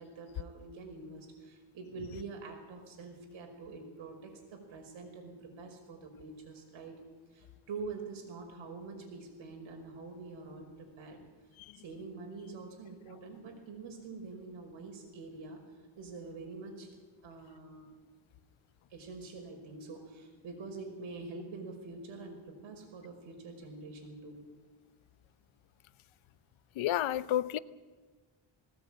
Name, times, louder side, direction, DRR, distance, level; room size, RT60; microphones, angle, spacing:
voice 1, 0.0-7.0 7.3-11.2 11.8-15.6 16.0-17.0 17.2-17.9 18.9-24.5, right 3 dB, 80° right, 5.4 m, -46 dB
voice 2, 26.8-27.6, left 12 dB, 85° left, 0.8 m, -31 dB
19.5 x 18.0 x 8.8 m
cardioid pair, 110°, 46 cm